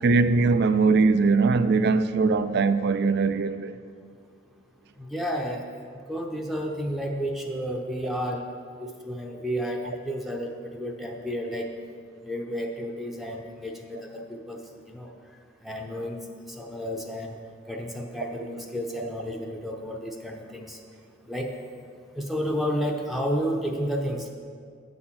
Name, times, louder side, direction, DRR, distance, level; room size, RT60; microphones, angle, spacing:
voice 1, 0.0-3.8, right 4 dB, 60° right, 12 dB, 0.4 m, -21 dB
voice 2, 5.0-5.7 6.1-8.4 8.8-11.7 12.2-15.1 15.6-16.2 16.5-17.4 17.7-20.8 21.3-21.5 22.1-24.3, equal, ahead, 0 dB, 0.6 m, -31 dB
8.6 x 4.2 x 7.3 m, 2.2 s
head